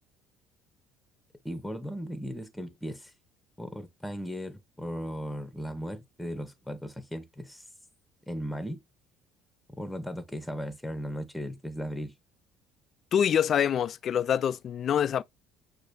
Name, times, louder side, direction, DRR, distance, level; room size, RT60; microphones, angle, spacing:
voice 1, 1.4-3.1 3.6-7.6 8.3-8.8 9.7-12.1, equal, 5° left, 0.9 m, -37 dB
voice 2, 13.1-15.2, left 9 dB, 50° left, 0.3 m, -25 dB
6.3 x 2.6 x 2.5 m
hypercardioid pair, 65°, 0 cm